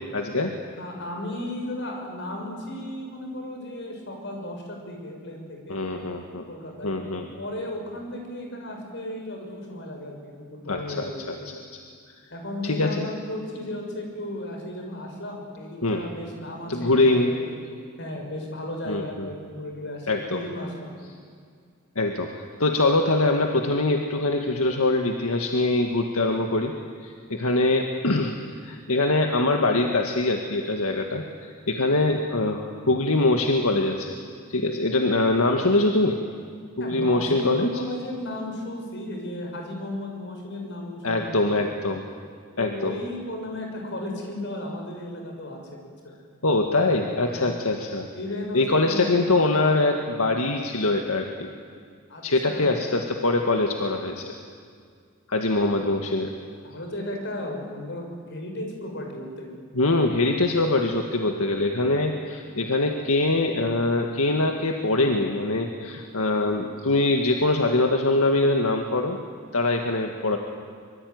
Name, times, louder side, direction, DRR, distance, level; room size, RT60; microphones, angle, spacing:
voice 1, 0.1-0.5 5.7-6.4 6.8-7.3 10.7-11.5 12.6-13.1 15.8-16.0 16.7-17.3 18.9-19.3 20.1-20.4 22.0-26.7 27.0-28.4 28.6-34.2 34.5-36.2 36.8-37.8 41.0-42.0 42.6-42.9 46.4-48.1 48.5-51.5 52.2-54.3 55.3-56.3 59.7-69.2 69.5-70.4, left 2 dB, 80° left, 3 dB, 1.9 m, -23 dB
voice 2, 0.8-5.8 6.5-6.9 7.4-11.2 12.3-17.6 18.0-21.0 36.8-41.8 42.6-45.6 47.3-47.5 48.1-49.1 52.1-52.9 56.6-59.5, left 1 dB, 55° left, 2 dB, 6.3 m, -35 dB
25.0 x 23.5 x 9.6 m, 2.1 s
head